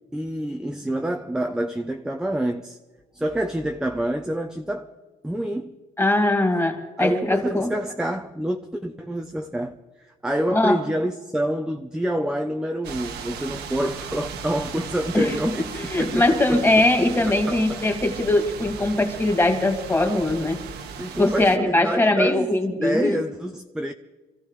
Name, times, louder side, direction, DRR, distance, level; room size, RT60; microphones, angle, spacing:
voice 1, 0.1-2.8 3.1-4.9 5.2-5.8 7.0-16.6 17.0-17.9 21.0-22.5 22.8-23.9, right 1 dB, 5° right, 0.8 m, -27 dB
voice 2, 6.0-7.7 10.5-10.8 15.1-15.5 15.9-20.6 21.2-23.2, left 2 dB, 15° left, 2.8 m, -21 dB
sound 1, 12.8-21.6, right 6 dB, 75° right, 1.7 m, -36 dB
27.0 x 15.0 x 3.4 m
cardioid pair, 110°, 17 cm